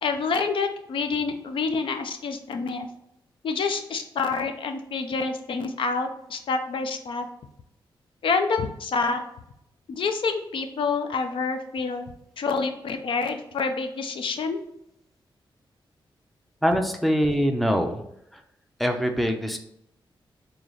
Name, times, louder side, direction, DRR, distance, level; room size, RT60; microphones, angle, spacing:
voice 1, 0.0-2.9 3.4-7.3 8.2-9.2 9.9-14.6, left 4 dB, 70° left, 6 dB, 0.5 m, -27 dB
voice 2, 16.6-18.0 18.3-18.4 18.8-19.6, equal, ahead, 5 dB, 0.5 m, -23 dB
3.9 x 2.8 x 3.1 m, 0.79 s
wide cardioid pair, 120°, 9 cm